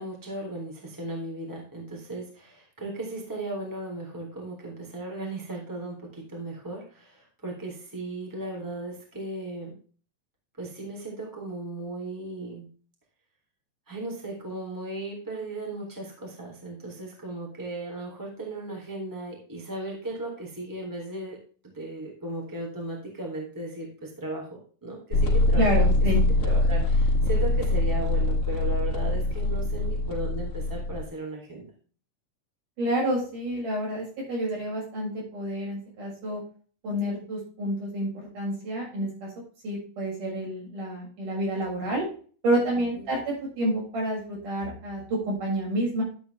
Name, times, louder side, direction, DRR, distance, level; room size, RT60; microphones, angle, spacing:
voice 1, 0.0-9.7 10.6-12.7 13.9-21.4 21.7-25.7 26.1-31.7 42.8-43.1, right 2 dB, 5° right, -1 dB, 3.2 m, -36 dB
sound 1, 25.1-31.0, left 2 dB, 45° left, 2.4 m, -23 dB
voice 2, 25.6-26.2 32.8-36.4 36.8-38.1 38.3-39.3 39.6-42.0 42.4-46.0, right 1 dB, 75° right, -4 dB, 8.3 m, -29 dB
11.5 x 8.3 x 3.5 m, 0.41 s
omnidirectional pair, 3.7 m